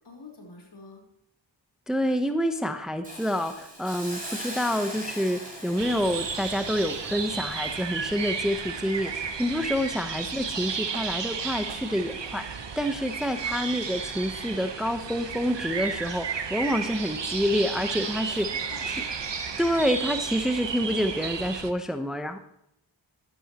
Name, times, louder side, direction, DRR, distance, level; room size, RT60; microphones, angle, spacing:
voice 1, 0.0-1.0 9.6-9.7 16.7-17.0 17.9-19.2, left 2 dB, 55° left, 0 dB, 4.6 m, -47 dB
voice 2, 1.9-18.5 18.9-19.0 19.6-22.4, equal, ahead, 7 dB, 0.9 m, -28 dB
Hiss, 3.0-10.1 10.5-10.6, right 1 dB, 15° right, 5.6 m, -42 dB
sound 1, 5.8-21.7, right 6 dB, 65° right, 1.2 m, -33 dB
13.0 x 12.5 x 3.0 m, 0.77 s
cardioid pair, 40°, 47 cm